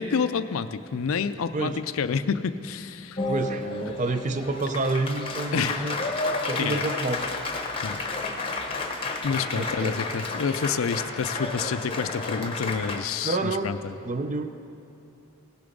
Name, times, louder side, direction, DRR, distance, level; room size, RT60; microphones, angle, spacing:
voice 1, 0.0-3.2 5.5-5.9 6.6-6.8 7.8-8.0 8.5-8.6 9.2-14.0, left 6 dB, 80° left, 12 dB, 0.4 m, -28 dB
Applause, 3.2-13.0, left 3 dB, 25° left, 0.8 m, -31 dB
voice 2, 3.3-6.0 6.5-7.3 9.6-10.0 13.2-13.7 14.0-14.5, right 2 dB, 35° right, 9 dB, 0.5 m, -28 dB
17.0 x 6.9 x 5.2 m, 2.6 s
head